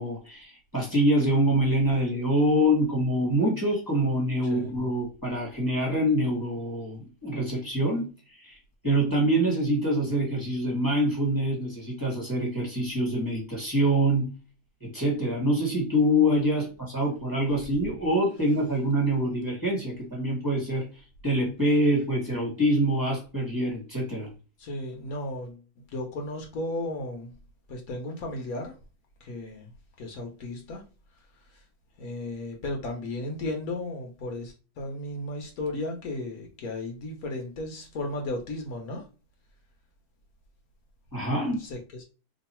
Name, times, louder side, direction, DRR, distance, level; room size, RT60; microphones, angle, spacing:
voice 1, 0.0-8.1 8.3-8.6 8.8-14.3 14.8-20.8 21.2-24.3 41.1-41.6, equal, 15° right, 1.3 m, -25 dB
voice 2, 24.6-27.4 27.7-28.8 29.2-29.7 30.0-30.8 31.1-31.6 32.0-39.1 41.4-42.0, left 2 dB, 65° left, 1.2 m, -35 dB
3.0 x 2.6 x 4.3 m
omnidirectional pair, 1.7 m